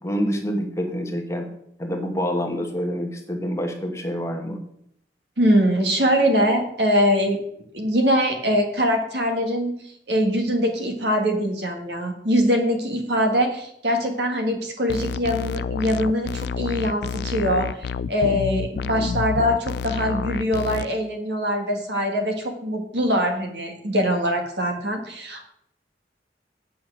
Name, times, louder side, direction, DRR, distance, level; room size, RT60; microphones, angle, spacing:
voice 1, 0.0-1.5 1.8-4.6, equal, 15° left, 2 dB, 1.2 m, -27 dB
voice 2, 5.4-7.4 7.7-9.7 10.1-25.5, equal, 75° right, 4 dB, 1.8 m, -23 dB
sound 1, 14.9-20.8, left 5 dB, 70° left, 0.3 m, -29 dB
8.6 x 5.9 x 6.2 m, 0.72 s
head